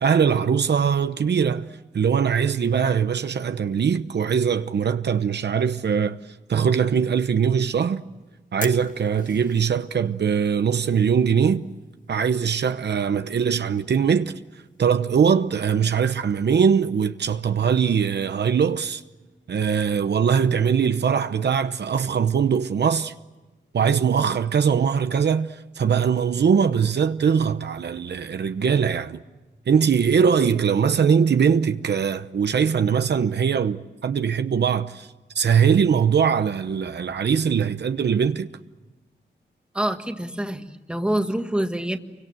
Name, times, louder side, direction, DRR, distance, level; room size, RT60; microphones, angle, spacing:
voice 1, 0.0-6.2 6.5-8.0 8.5-11.6 12.1-14.4 14.8-19.0 19.5-23.1 23.7-29.2 29.7-35.1 35.3-38.5, right 7 dB, 70° right, 0.9 m, -21 dB
Fire, 7.5-19.1, left 4 dB, 45° left, 1.4 m, -48 dB
voice 2, 39.7-42.0, right 1 dB, 5° right, 1.6 m, -26 dB
29.5 x 24.5 x 7.7 m
wide cardioid pair, 155°, 18 cm